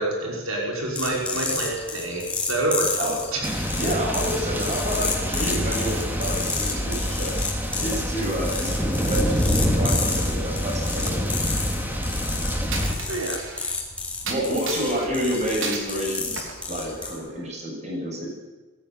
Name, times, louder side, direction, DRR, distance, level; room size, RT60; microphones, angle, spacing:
voice 1, 0.0-3.0 3.3-3.5 13.1-13.4, right 2 dB, 85° right, -1 dB, 5.8 m, -27 dB
sound 1, 0.9-17.2, left 3 dB, 5° left, 4.0 m, -31 dB
sound 2, 3.4-12.9, equal, 10° right, 2.6 m, -26 dB
voice 2, 3.8-7.3 7.8-11.2 14.2-18.3, equal, 35° right, -1 dB, 7.9 m, -29 dB
Coin (dropping), 12.7-13.7 14.3-15.1 15.6-16.0 16.4-17.4, right 4 dB, 65° right, 4.0 m, -34 dB
21.5 x 16.0 x 9.8 m, 1.2 s
head